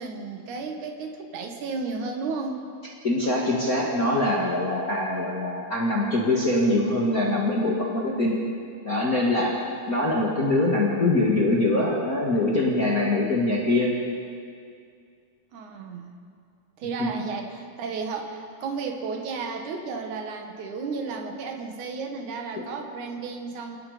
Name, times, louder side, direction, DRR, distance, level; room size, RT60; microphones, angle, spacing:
voice 1, 0.0-2.6 15.5-16.1 16.8-23.8, right 4 dB, 80° right, 3 dB, 3.0 m, -33 dB
voice 2, 3.0-8.4 8.8-9.5 9.9-13.9 17.0-17.1, left 2 dB, 30° left, -4 dB, 2.2 m, -23 dB
28.5 x 18.0 x 5.1 m, 2.3 s
omnidirectional pair, 3.4 m